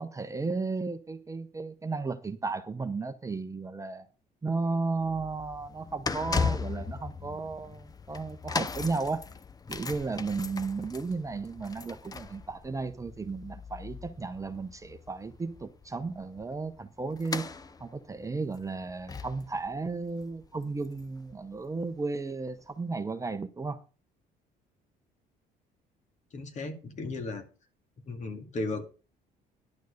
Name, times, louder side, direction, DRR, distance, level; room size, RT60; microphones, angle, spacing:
voice 1, 0.0-4.1 4.4-9.2 9.7-17.5 17.8-23.8, right 3 dB, 20° right, 0.9 m, -34 dB
sound 1, 5.0-21.3 21.6-21.8 22.6-22.7, left 5 dB, 20° left, 0.7 m, -38 dB
voice 2, 26.3-27.4 28.1-28.8, left 2 dB, 45° left, 2.2 m, -35 dB
11.0 x 6.4 x 6.5 m
cardioid pair, 110°, 17 cm